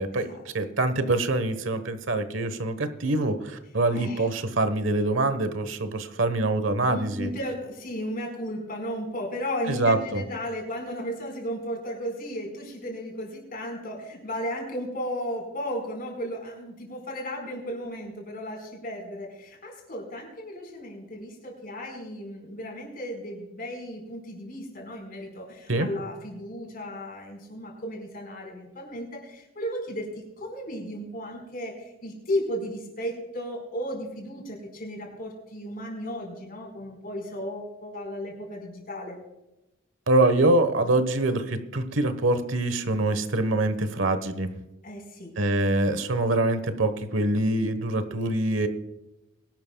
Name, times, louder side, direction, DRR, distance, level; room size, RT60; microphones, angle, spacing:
voice 1, 0.0-7.3 9.7-10.2 25.7-25.9 40.1-44.5 45.4-48.7, right 2 dB, 70° right, 10 dB, 1.2 m, -25 dB
voice 2, 3.9-4.3 6.9-39.2 44.8-45.3, equal, 45° left, 1 dB, 4.6 m, -35 dB
22.0 x 12.0 x 2.3 m, 0.96 s
head